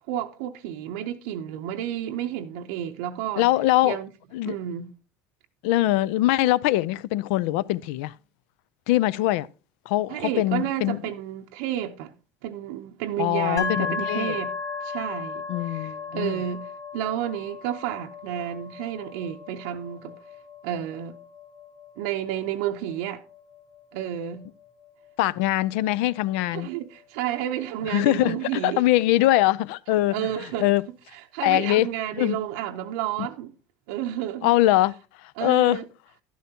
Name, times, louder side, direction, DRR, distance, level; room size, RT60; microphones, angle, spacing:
voice 1, 0.1-3.5 3.8-4.1 4.4-4.9 10.1-12.1 12.4-14.5 14.8-20.1 20.6-21.2 22.0-23.2 23.9-24.5 26.5-28.8 30.1-30.7 31.1-33.5 33.9-34.5 35.4-35.9, right 11 dB, 85° right, 0.7 m, -31 dB
voice 2, 3.4-4.0 4.3-4.6 5.6-8.1 8.9-9.5 9.9-11.0 13.2-14.4 15.5-16.4 25.2-26.7 27.9-30.3 30.6-30.8 31.4-31.9 32.2-32.4 34.4-35.8, left 16 dB, 85° left, 0.4 m, -22 dB
sound 1, 13.6-27.3, left 5 dB, 50° left, 3.0 m, -37 dB
11.5 x 10.0 x 2.8 m
cardioid pair, 160°, 6 cm